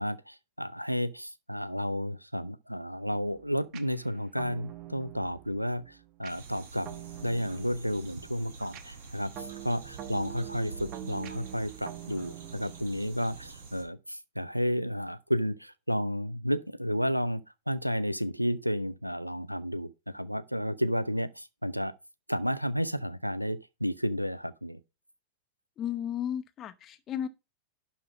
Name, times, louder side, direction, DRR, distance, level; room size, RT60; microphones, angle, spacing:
voice 1, 0.0-6.9 7.2-21.9 22.3-24.8, equal, 90° right, 0.6 m, -32 dB
sound 1, 3.0-13.7, right 13 dB, 40° right, 1.0 m, -46 dB
sound 2, 6.3-13.8, right 4 dB, 60° right, 3.6 m, -47 dB
voice 2, 25.8-27.3, left 9 dB, 30° left, 1.0 m, -34 dB
11.5 x 4.3 x 5.1 m
figure-of-eight pair, 90°, 0 cm